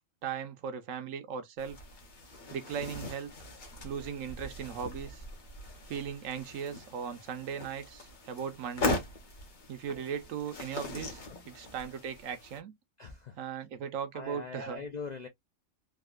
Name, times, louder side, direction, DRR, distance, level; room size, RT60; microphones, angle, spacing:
voice 1, 0.2-1.8 2.5-3.3 3.8-5.2 5.9-9.0 9.7-12.8 13.4-14.8, right 7 dB, 75° right, 1.0 m, -38 dB
sound 1, 1.6-12.6, left 2 dB, 40° left, 0.9 m, -40 dB
voice 2, 13.0-13.7 14.1-15.3, left 4 dB, 65° left, 0.4 m, -43 dB
3.6 x 2.4 x 2.2 m
omnidirectional pair, 1.4 m